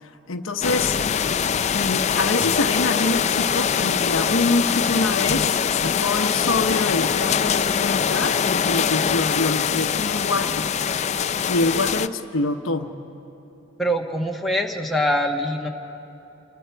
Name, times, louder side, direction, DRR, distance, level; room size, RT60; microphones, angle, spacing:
voice 1, 0.3-1.0 1.7-10.7 11.5-12.9, left 3 dB, 70° left, 7 dB, 0.9 m, -25 dB
sound 1, 0.6-12.1, left 7 dB, 35° left, 0.4 m, -23 dB
voice 2, 13.8-15.7, equal, ahead, 0 dB, 1.2 m, -23 dB
29.0 x 20.0 x 4.6 m, 3.0 s
head